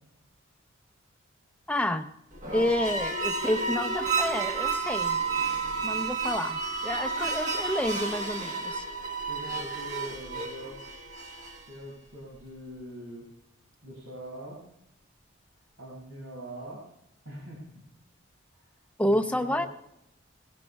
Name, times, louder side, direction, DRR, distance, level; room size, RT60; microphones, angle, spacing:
voice 1, 1.7-2.1 2.5-5.2 5.8-8.8 19.0-19.7, left 1 dB, 5° left, 6 dB, 0.6 m, -29 dB
sound 1, 2.3-11.7, right 4 dB, 35° right, 1.3 m, -31 dB
voice 2, 9.0-10.8 11.7-13.3 13.8-14.6 15.8-16.8 17.2-17.6 18.6-18.7 19.0-19.7, equal, 85° right, -4 dB, 6.0 m, -42 dB
19.5 x 17.5 x 2.3 m, 0.81 s
head